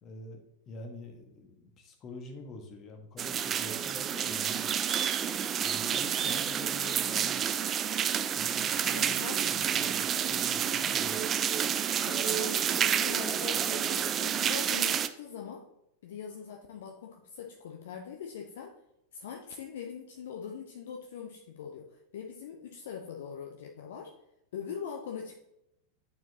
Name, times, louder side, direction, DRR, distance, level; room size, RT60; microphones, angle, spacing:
voice 1, 0.0-4.7 5.6-7.4 8.3-11.2, left 2 dB, 30° left, 4 dB, 1.3 m, -46 dB
sound 1, 3.2-15.1, right 8 dB, 25° right, 0.4 m, -29 dB
voice 2, 8.9-9.4 12.0-15.6 16.0-18.8 19.1-24.2 24.5-25.3, left 7 dB, 60° left, 3 dB, 0.6 m, -42 dB
9.2 x 4.5 x 2.8 m, 0.83 s
figure-of-eight pair, 90°, 0 cm